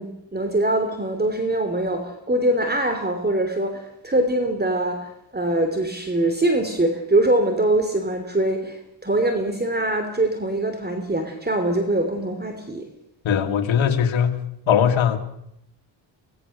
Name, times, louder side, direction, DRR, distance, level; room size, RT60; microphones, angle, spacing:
voice 1, 0.0-12.9, right 1 dB, 20° right, 6 dB, 3.1 m, -23 dB
voice 2, 13.2-15.2, left 8 dB, 80° left, 6 dB, 2.3 m, -20 dB
25.5 x 18.5 x 6.7 m, 0.78 s
cardioid pair, 80°, 46 cm